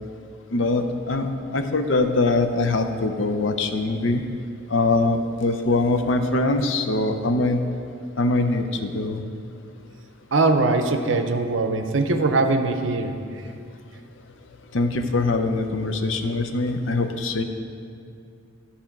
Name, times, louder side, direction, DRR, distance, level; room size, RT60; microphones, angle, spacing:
voice 1, 0.5-1.3 1.5-4.2 4.7-7.6 8.2-9.2 14.7-17.4, left 2 dB, 70° left, 7 dB, 0.6 m, -22 dB
voice 2, 10.3-13.1, right 3 dB, 70° right, 7 dB, 0.6 m, -21 dB
11.5 x 4.3 x 5.9 m, 2.5 s
head